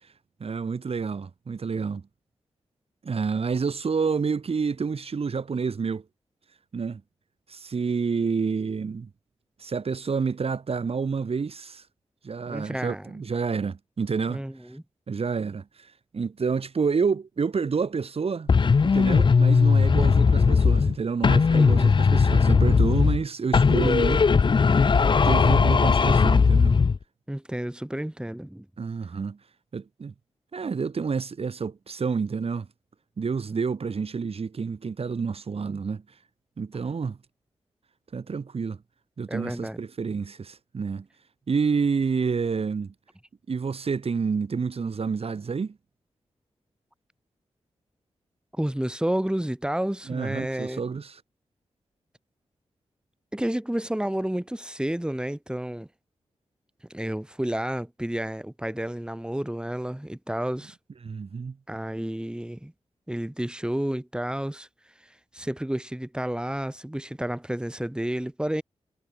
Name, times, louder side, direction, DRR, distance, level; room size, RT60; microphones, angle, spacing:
voice 1, 0.4-2.0 3.0-6.0 6.7-7.0 7.5-9.1 9.6-11.8 12.2-14.4 15.1-18.5 18.8-24.3 24.6-24.8 25.2-26.8 28.8-29.4 29.7-30.1 30.5-32.7 33.2-36.0 36.6-37.2 38.1-38.8 39.2-41.1 41.5-42.9 43.5-45.8 50.1-51.2 61.0-61.6, right 5 dB, 60° right, 4.0 m, -28 dB
voice 2, 12.5-13.1 14.3-14.8 21.5-22.0 27.3-28.6 39.3-39.8 48.6-50.8 53.3-55.9 56.9-60.8 61.7-62.7 63.1-64.7 65.3-68.6, right 1 dB, 10° right, 4.6 m, -30 dB
sound 1, 18.5-21.0 21.2-23.2 23.5-27.0, left 5 dB, 45° left, 0.7 m, -19 dB
cardioid pair, 60°, 11 cm